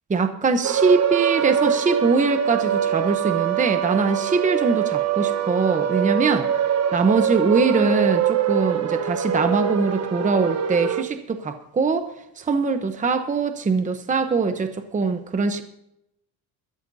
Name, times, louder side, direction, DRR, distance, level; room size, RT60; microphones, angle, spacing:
voice 1, 0.1-6.5 6.9-12.1 12.4-15.6, right 4 dB, 20° right, 8 dB, 0.9 m, -22 dB
sound 1, 0.6-11.0, right 9 dB, 40° right, 1.2 m, -23 dB
22.0 x 13.5 x 2.8 m, 0.82 s
cardioid pair, 135°, 40 cm